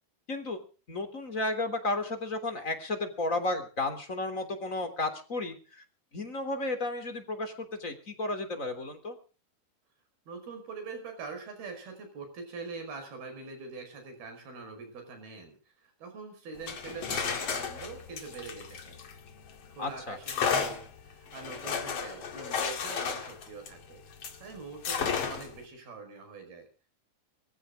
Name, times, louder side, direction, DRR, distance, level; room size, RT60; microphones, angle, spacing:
voice 1, 0.3-0.6 0.9-5.8 6.1-9.2 19.8-20.2, left 2 dB, 20° left, 7 dB, 3.2 m, -33 dB
voice 2, 10.3-19.0 19.7-24.0 24.4-26.7, right 4 dB, 80° right, 6 dB, 7.2 m, -43 dB
sound 1, 16.5-19.6 20.2-24.4 24.8-25.6, left 6 dB, 45° left, 2.9 m, -33 dB
24.0 x 15.0 x 3.7 m, 0.36 s
omnidirectional pair, 4.3 m